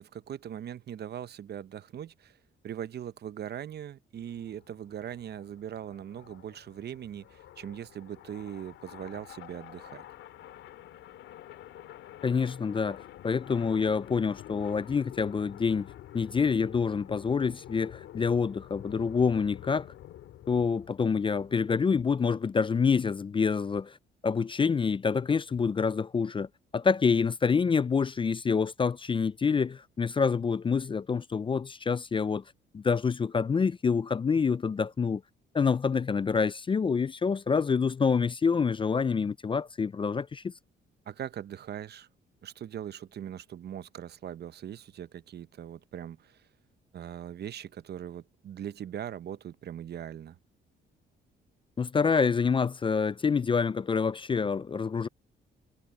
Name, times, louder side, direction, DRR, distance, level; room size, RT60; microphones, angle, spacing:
voice 1, 0.0-2.4 2.6-10.1 41.1-42.1 42.4-46.4 46.9-50.4, right 10 dB, 55° right, 0.8 m, -40 dB
sound 1, 4.2-21.7, left 13 dB, 80° left, 3.1 m, -48 dB
voice 2, 12.2-15.9 16.1-19.9 20.5-24.0 24.2-26.5 26.7-32.4 32.7-35.2 35.5-40.5 51.8-55.1, left 5 dB, 25° left, 0.4 m, -27 dB
cardioid pair, 90°, 20 cm